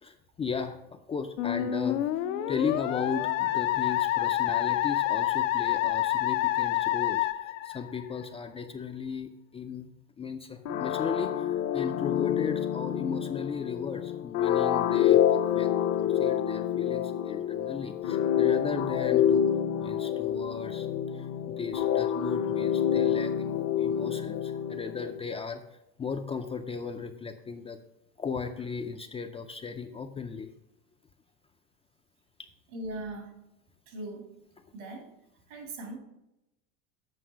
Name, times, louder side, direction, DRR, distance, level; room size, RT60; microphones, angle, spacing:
voice 1, 0.0-2.0 2.5-9.9 10.2-27.8 28.2-30.5 32.4-32.5, left 5 dB, 15° left, 5 dB, 0.3 m, -36 dB
Musical instrument, 1.4-8.2, left 13 dB, 85° left, 0.7 m, -28 dB
sound 1, 10.7-25.2, left 9 dB, 45° left, 0.7 m, -27 dB
voice 2, 32.7-33.4 33.9-34.3 34.7-35.1 35.5-36.0, right 2 dB, 75° right, 2 dB, 2.8 m, -39 dB
7.9 x 5.4 x 5.0 m, 0.90 s
supercardioid pair, 115°, 38 cm